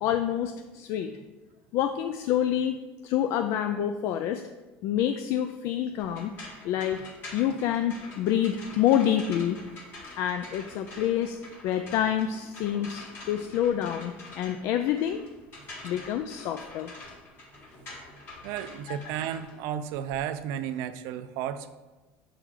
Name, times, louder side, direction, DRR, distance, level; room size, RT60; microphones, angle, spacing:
voice 1, 0.0-1.1 1.7-2.8 3.0-4.4 4.8-6.3 6.6-7.0 7.3-9.6 10.2-11.4 11.6-15.2 15.8-16.9 18.9-19.0, left 10 dB, 60° left, 7 dB, 0.3 m, -27 dB
sound 1, 6.0-20.2, left 2 dB, 45° left, 1.8 m, -46 dB
voice 2, 18.4-21.8, right 9 dB, 70° right, 11 dB, 0.4 m, -33 dB
6.7 x 3.7 x 4.7 m, 1.2 s
cardioid pair, 140°, 5 cm